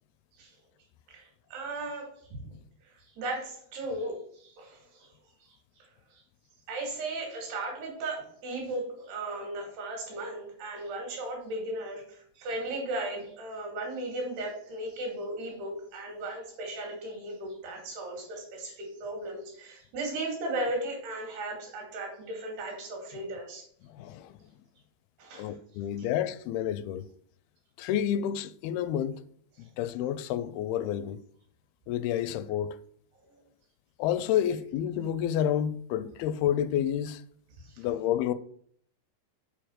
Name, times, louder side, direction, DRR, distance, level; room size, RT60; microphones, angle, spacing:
voice 1, 1.1-2.4 2.8-5.1 6.1-6.2 6.7-23.7 25.2-25.6 26.0-26.1 33.3-33.4 37.6-37.8, right 2 dB, 80° right, 4.4 m, -36 dB
voice 2, 23.9-24.4 25.4-27.1 27.8-29.2 29.6-31.2 31.9-32.8 34.0-37.2 37.8-38.3, left 10 dB, 80° left, 2.3 m, -29 dB
7.9 x 4.7 x 6.3 m
omnidirectional pair, 4.6 m